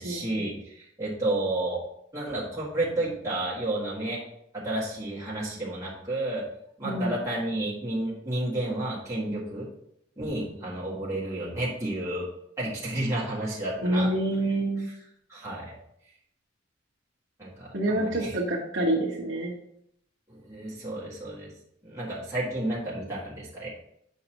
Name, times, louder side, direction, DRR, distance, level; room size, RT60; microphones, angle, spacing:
voice 1, 0.0-1.8 2.1-4.2 4.5-6.4 6.8-9.7 10.2-12.3 12.6-14.1 15.3-15.7 17.4-18.4 20.3-21.5 21.8-23.7, right 1 dB, 15° right, -8 dB, 1.9 m, -31 dB
voice 2, 6.8-7.1 13.8-14.9 17.7-19.5, right 1 dB, 75° right, -4 dB, 1.3 m, -27 dB
8.6 x 5.4 x 3.0 m, 0.73 s
head